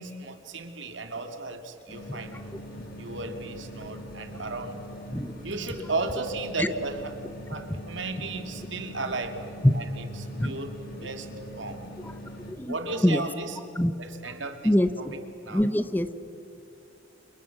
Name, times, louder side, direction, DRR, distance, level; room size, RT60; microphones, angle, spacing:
voice 1, 0.0-2.4 3.0-4.8 5.4-7.1 7.5-9.4 9.7-10.1 10.4-11.3 11.6-11.8 12.7-13.6 14.0-14.7 15.0-15.1 15.4-15.6, right 3 dB, 75° right, 6 dB, 2.6 m, -34 dB
sound 1, 1.9-12.5, equal, 50° left, 6.1 m, -42 dB
voice 2, 15.5-16.1, left 1 dB, 10° left, 12 dB, 0.7 m, -23 dB
30.0 x 27.5 x 6.1 m, 2.9 s
head